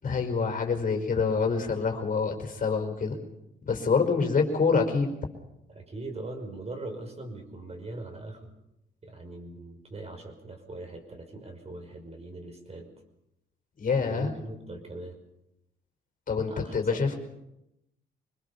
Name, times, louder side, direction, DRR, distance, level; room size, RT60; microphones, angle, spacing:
voice 1, 0.0-3.2 3.6-5.1 13.8-14.3 16.3-17.1, left 5 dB, 45° left, 4 dB, 5.2 m, -26 dB
voice 2, 5.7-8.5 9.0-12.9 14.0-15.2 16.5-17.2, right 2 dB, 30° right, 4 dB, 5.8 m, -41 dB
25.5 x 20.5 x 7.1 m, 0.85 s
cardioid pair, 90°, 20 cm